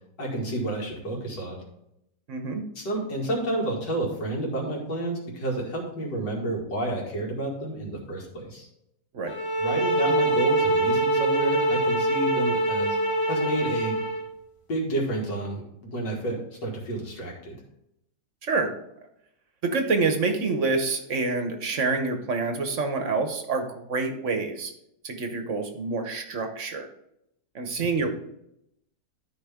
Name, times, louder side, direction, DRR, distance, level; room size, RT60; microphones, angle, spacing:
voice 1, 0.2-1.6 2.8-8.7 9.6-13.0 13.3-14.0 14.7-17.6 27.8-27.9, right 1 dB, 75° left, -1 dB, 2.8 m, -30 dB
voice 2, 2.3-2.7 9.1-9.3 18.4-18.7 19.6-24.7 25.0-26.9 27.5-28.2, right 3 dB, 50° right, 6 dB, 1.1 m, -27 dB
sound 1, 9.3-14.3, right 1 dB, 15° left, 1.3 m, -24 dB
12.5 x 5.0 x 3.5 m, 0.80 s
omnidirectional pair, 1.9 m